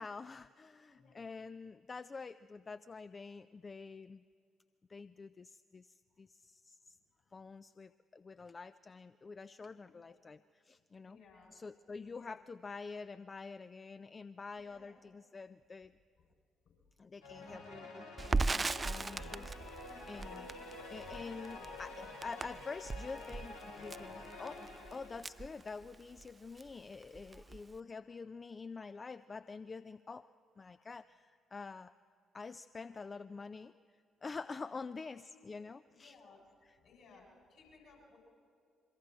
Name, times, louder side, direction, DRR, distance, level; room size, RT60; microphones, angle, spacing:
voice 1, 0.0-4.2 4.9-7.0 7.3-11.2 11.5-15.9 17.0-24.6 24.9-30.3 30.6-31.9 32.3-33.7 34.2-36.2, left 4 dB, 35° left, 14 dB, 0.4 m, -47 dB
voice 2, 0.9-1.4 7.2-7.5 9.8-10.2 11.0-11.5 12.1-12.4 14.5-15.1 16.6-16.8 34.6-34.8 35.3-35.6 35.9-36.4 36.7-38.2, left 4 dB, 60° left, -2 dB, 7.6 m, -62 dB
sound 1, 17.2-25.8, left 3 dB, 80° left, 3.3 m, -49 dB
Crackle, 18.2-26.3 26.6-26.7 27.0-27.8, right 3 dB, 30° right, 0.4 m, -38 dB
26.5 x 23.0 x 4.4 m, 2.3 s
figure-of-eight pair, 45°, 0 cm